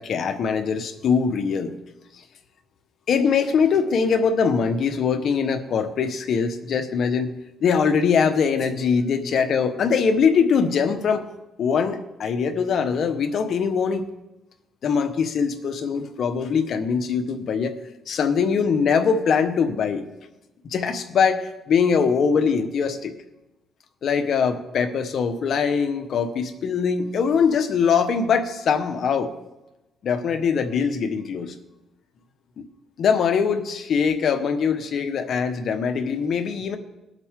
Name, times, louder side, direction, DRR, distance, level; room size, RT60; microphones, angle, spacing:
voice 1, 0.0-1.7 3.1-7.3 7.6-11.3 11.6-14.1 14.8-17.7 18.1-20.0 20.6-23.1 24.0-29.3 30.0-31.5 32.6-32.7 33.0-36.8, left 6 dB, 60° left, 8 dB, 1.2 m, -22 dB
20.5 x 8.0 x 3.7 m, 0.97 s
cardioid pair, 90°, 0 cm